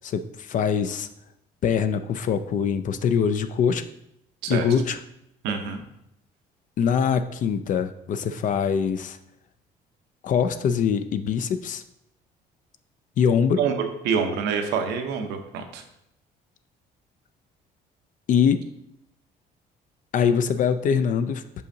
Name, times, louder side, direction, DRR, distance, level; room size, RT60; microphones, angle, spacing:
voice 1, 0.0-1.1 1.6-3.8 4.5-5.0 6.8-9.2 10.2-11.8 13.2-13.6 18.3-18.7 20.1-21.6, left 7 dB, 50° left, 10 dB, 0.4 m, -23 dB
voice 2, 4.4-4.7 5.4-5.8 13.6-15.8, right 6 dB, 85° right, 5 dB, 0.8 m, -26 dB
6.2 x 5.5 x 2.7 m, 0.80 s
cardioid pair, 110°, 17 cm